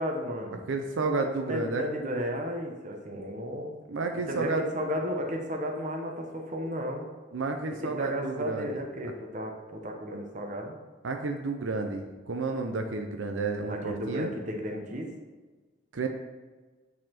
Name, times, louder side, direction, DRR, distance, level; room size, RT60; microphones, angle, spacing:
voice 1, 0.0-0.7 1.4-3.7 4.3-7.1 7.8-10.7 13.7-15.1, equal, 40° right, 2 dB, 1.0 m, -33 dB
voice 2, 0.7-1.8 3.9-4.6 7.3-8.7 11.0-14.3 15.9-16.1, right 3 dB, 80° right, 4 dB, 0.6 m, -31 dB
9.1 x 4.2 x 4.3 m, 1.3 s
head